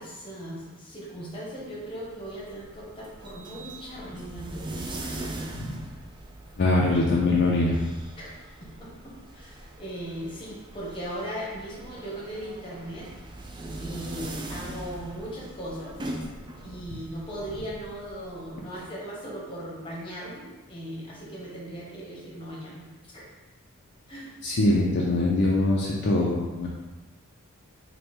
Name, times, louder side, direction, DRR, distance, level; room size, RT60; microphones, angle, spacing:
voice 1, 0.0-5.1 8.2-8.3 8.6-13.1 13.8-16.0 16.6-22.8 23.1-23.2 24.1-24.3, right 1 dB, 25° left, -5 dB, 0.9 m, -38 dB
sound 1, 2.0-18.8, right 1 dB, 20° right, 0.3 m, -41 dB
voice 2, 6.6-7.8 24.4-26.7, left 2 dB, 50° left, -4 dB, 0.4 m, -23 dB
3.3 x 2.2 x 4.3 m, 1.2 s
head